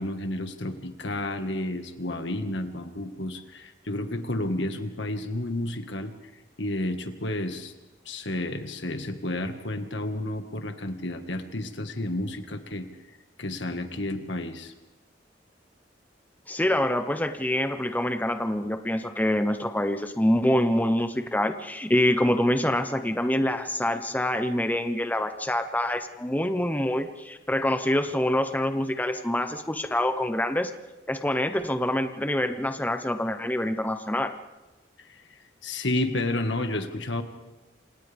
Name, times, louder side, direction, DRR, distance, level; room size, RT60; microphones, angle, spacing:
voice 1, 0.0-6.1 6.6-7.7 8.1-12.9 13.4-14.7 35.0-37.2, left 1 dB, 80° left, 7 dB, 1.9 m, -31 dB
voice 2, 16.5-30.7 31.1-34.3, left 1 dB, 10° left, 8 dB, 1.0 m, -26 dB
28.0 x 27.0 x 3.6 m, 1.1 s
head